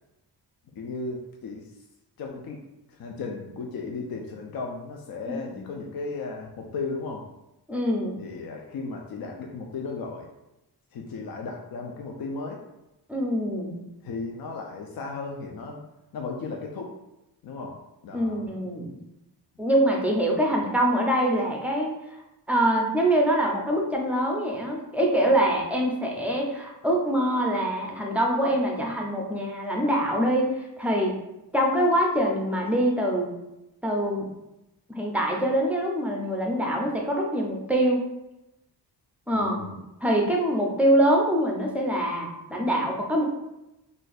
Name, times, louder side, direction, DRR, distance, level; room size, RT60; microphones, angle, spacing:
voice 1, 0.7-1.7 2.2-2.6 2.9-7.2 8.2-10.3 10.9-12.6 14.0-15.8 16.1-16.9 17.4-18.5 20.5-20.6 39.3-39.8, left 4 dB, 60° left, 1 dB, 0.5 m, -35 dB
voice 2, 5.3-5.6 7.7-8.2 13.1-13.9 18.1-18.9 19.6-22.2 22.5-31.2 31.5-33.3 33.8-34.3 34.9-38.0 39.3-39.6 40.0-43.2, right 1 dB, 5° right, -1 dB, 0.5 m, -24 dB
2.6 x 2.3 x 4.0 m, 0.92 s
wide cardioid pair, 140°, 40 cm